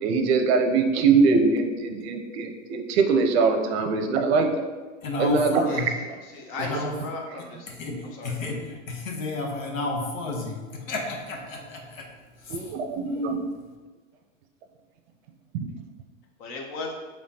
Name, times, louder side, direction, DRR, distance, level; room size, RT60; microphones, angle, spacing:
voice 1, 0.0-4.7 5.2-5.6 7.9-8.0 12.5-13.4 15.5-15.7, right 4 dB, 50° right, 5 dB, 0.6 m, -22 dB
voice 2, 5.0-5.9 6.6-7.0 7.7-12.1 12.4-12.7 13.0-13.4, left 2 dB, 80° left, 1 dB, 1.0 m, -32 dB
voice 3, 6.3-7.7 8.1-8.3 16.4-16.9, left 3 dB, 40° left, 1 dB, 0.9 m, -35 dB
5.0 x 3.1 x 2.7 m, 1.3 s
hypercardioid pair, 125°, 40 cm